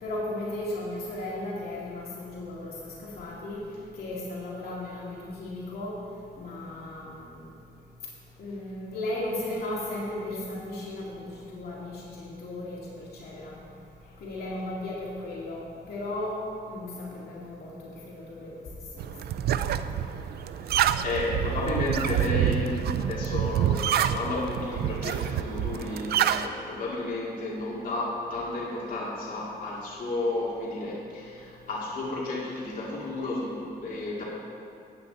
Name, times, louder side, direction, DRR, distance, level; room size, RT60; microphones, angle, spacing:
voice 1, 0.0-3.6 3.9-6.0 6.4-7.4 8.4-13.6 14.2-16.4 16.7-18.5 18.9-20.0, left 1 dB, 70° left, -5 dB, 2.3 m, -36 dB
sound 1, 19.0-26.5, right 10 dB, 75° right, 0.4 m, -27 dB
voice 2, 20.6-34.2, left 2 dB, 55° left, -5 dB, 2.3 m, -32 dB
13.5 x 8.8 x 4.0 m, 2.5 s
cardioid pair, 140°, 17 cm